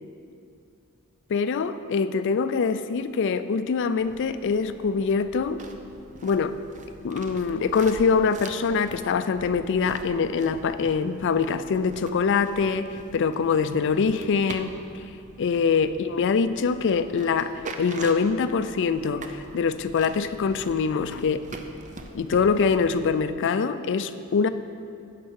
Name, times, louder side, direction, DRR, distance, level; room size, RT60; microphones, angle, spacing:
voice 1, 1.3-5.6 6.2-6.6 7.0-14.7 15.4-17.5 17.8-21.4 22.1-24.5, left 5 dB, 55° left, 11 dB, 0.4 m, -24 dB
sound 1, 4.0-23.2, right 2 dB, 35° right, 0.6 m, -43 dB
10.5 x 5.4 x 6.4 m, 2.5 s
head